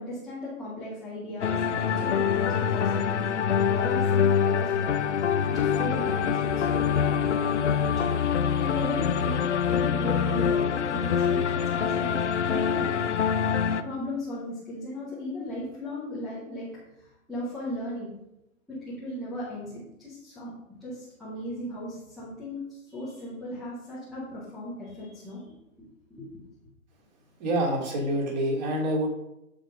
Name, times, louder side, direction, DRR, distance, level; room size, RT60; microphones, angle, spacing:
voice 1, 0.0-5.0 5.5-8.2 8.6-9.4 9.7-12.2 12.4-13.0 13.8-16.7 17.0-18.1 18.7-20.5 20.8-25.4 26.1-26.4, left 1 dB, ahead, -12 dB, 0.7 m, -36 dB
sound 1, 1.4-13.8, left 7 dB, 55° left, 0.8 m, -25 dB
voice 2, 27.4-29.1, right 1 dB, 30° right, -1 dB, 3.0 m, -26 dB
13.5 x 5.1 x 5.1 m, 0.87 s
hypercardioid pair, 160°, 41 cm